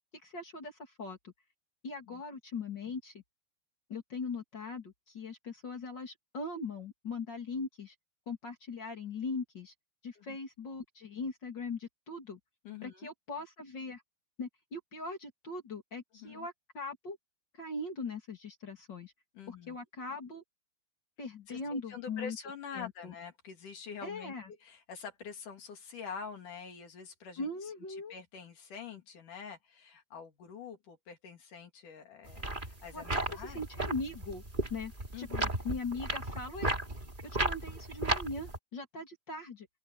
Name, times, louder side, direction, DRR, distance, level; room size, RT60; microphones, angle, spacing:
voice 1, 0.2-1.3 1.8-3.2 3.9-7.9 8.3-9.7 10.0-12.4 12.8-14.0 14.4-17.2 17.6-19.1 19.5-20.4 21.2-22.4 22.7-23.1 24.0-24.5 27.4-28.1 32.9-34.4 34.7-34.9 35.2-36.7 37.4-39.7, left 3 dB, 30° left, 2.4 m, -40 dB
voice 2, 12.6-13.1 16.1-16.5 19.3-19.8 21.5-27.7 28.1-33.6 35.1-35.6, left 6 dB, 50° left, 3.4 m, -46 dB
sound 1, 32.3-38.6, right 1 dB, 15° right, 2.1 m, -35 dB
open air
omnidirectional pair, 5.1 m